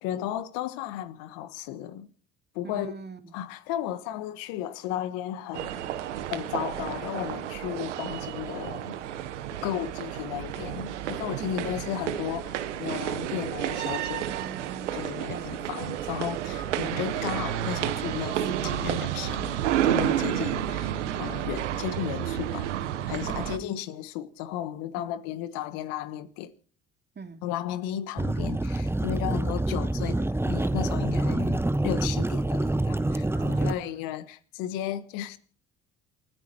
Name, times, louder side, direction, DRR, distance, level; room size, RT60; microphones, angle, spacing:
voice 1, 0.0-2.1 2.5-2.9 3.3-5.8 6.3-9.0 9.6-14.3 14.9-22.7 23.0-26.5 27.4-35.4, left 11 dB, 75° left, 1.4 m, -34 dB
voice 2, 2.6-3.4 8.0-8.2 9.7-9.9 11.4-11.6 14.3-15.6 20.2-20.5 23.2-23.8 27.1-27.5 33.3-34.1, right 5 dB, 30° right, 2.7 m, -43 dB
sound 1, 5.5-23.6, right 11 dB, 90° right, 1.2 m, -31 dB
sound 2, 28.2-33.7, right 1 dB, 5° right, 1.0 m, -26 dB
28.5 x 10.0 x 4.5 m
hypercardioid pair, 55°, 35 cm